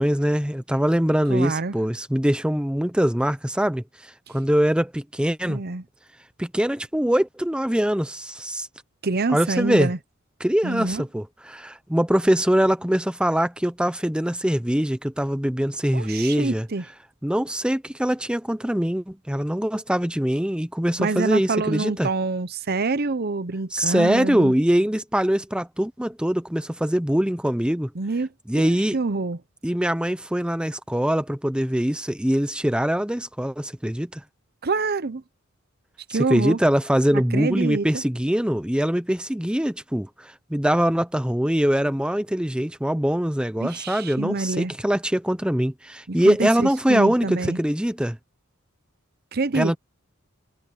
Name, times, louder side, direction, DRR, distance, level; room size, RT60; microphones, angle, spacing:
voice 1, 0.0-5.6 6.4-8.7 9.3-9.9 10.4-16.7 17.2-22.1 23.7-27.9 28.5-29.0 29.6-34.2 36.1-48.2 49.5-49.8, equal, 5° right, 0.7 m, -23 dB
voice 2, 1.3-1.7 5.5-5.8 9.0-10.0 10.6-11.0 15.9-16.8 21.0-24.5 27.9-28.3 28.6-29.4 34.6-35.2 36.1-36.6 37.3-38.0 43.6-44.7 46.1-47.6 49.3-49.8, right 3 dB, 50° right, 0.8 m, -26 dB
head